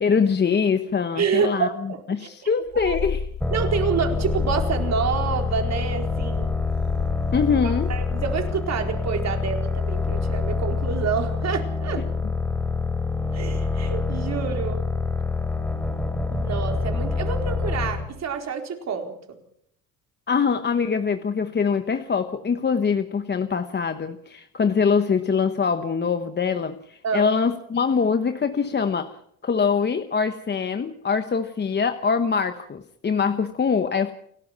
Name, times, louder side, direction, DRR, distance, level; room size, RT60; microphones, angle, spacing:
voice 1, 0.0-3.2 7.3-7.9 20.3-29.2 29.4-34.1, left 5 dB, 30° left, 9 dB, 1.1 m, -23 dB
voice 2, 1.2-2.3 2.9-3.0 3.5-6.5 7.3-12.1 13.3-14.8 16.3-19.4 27.0-27.3, right 6 dB, 45° right, 4 dB, 4.4 m, -28 dB
Purr, 2.7-10.8, left 7 dB, 70° left, 3.8 m, -34 dB
sound 1, 3.4-18.1, left 4 dB, 5° left, 3.1 m, -26 dB
29.0 x 12.5 x 7.5 m, 0.69 s
cardioid pair, 120°, 36 cm